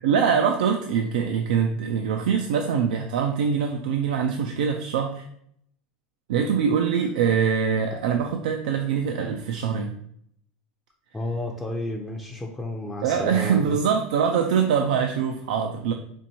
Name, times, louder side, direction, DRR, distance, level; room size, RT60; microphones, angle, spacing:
voice 1, 0.0-5.3 6.3-9.9 13.0-15.9, right 7 dB, 85° right, 4 dB, 0.3 m, -23 dB
voice 2, 11.1-13.8, left 1 dB, 10° left, -2 dB, 0.5 m, -31 dB
4.4 x 2.6 x 2.8 m, 0.68 s
supercardioid pair, 105°, 4 cm